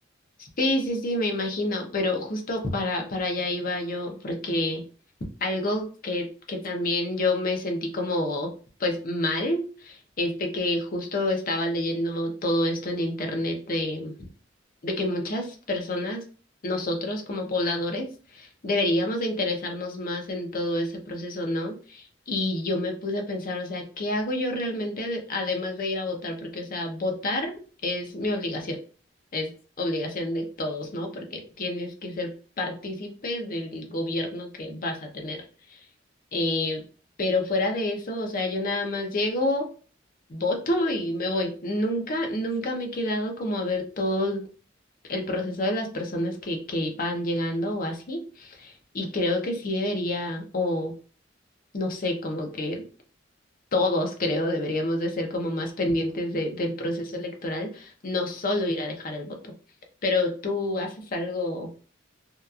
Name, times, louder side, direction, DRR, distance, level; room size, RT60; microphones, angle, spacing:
voice 1, 0.4-4.8 5.4-8.5 8.8-14.3 14.8-16.2 16.6-28.8 29.3-29.5 29.8-32.3 32.6-35.4 35.7-35.8 36.3-36.8 37.2-39.7 40.3-44.4 45.1-50.9 51.7-52.8 53.7-59.5 60.0-61.7, left 1 dB, 50° left, 3 dB, 0.6 m, -28 dB
2.8 x 2.3 x 2.3 m, 0.38 s
head